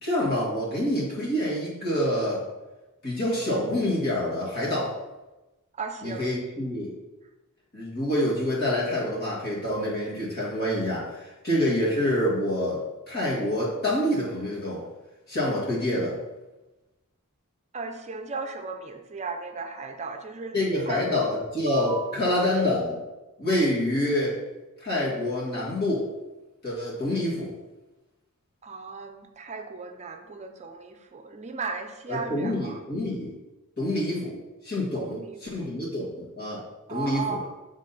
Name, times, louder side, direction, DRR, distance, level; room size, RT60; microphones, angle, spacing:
voice 1, 0.0-2.4 3.0-5.0 6.0-6.9 7.7-14.8 15.3-16.2 20.5-23.0 23.4-24.4 24.8-26.1 26.6-27.5 32.1-33.3 33.8-34.4 34.6-35.2 35.5-36.6 36.9-37.4, left 1 dB, 45° left, -6 dB, 2.1 m, -27 dB
voice 2, 5.7-6.3 17.7-21.4 21.7-22.2 28.6-32.8 34.9-35.7 36.9-37.5, right 4 dB, 30° right, 6 dB, 0.6 m, -36 dB
7.3 x 3.8 x 4.1 m, 1.1 s
head